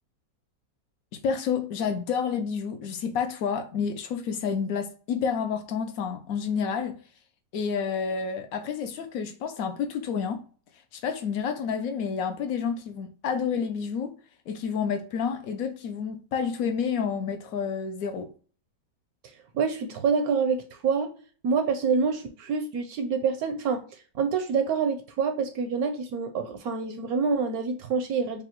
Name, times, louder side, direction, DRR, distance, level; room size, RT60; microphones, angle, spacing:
voice 1, 1.2-7.0 7.5-10.4 10.9-14.2 14.5-18.3, left 6 dB, 75° left, 0.8 m, -29 dB
voice 2, 19.5-21.1 21.4-28.4, right 5 dB, 70° right, 0.9 m, -27 dB
4.9 x 2.3 x 2.9 m
omnidirectional pair, 1.9 m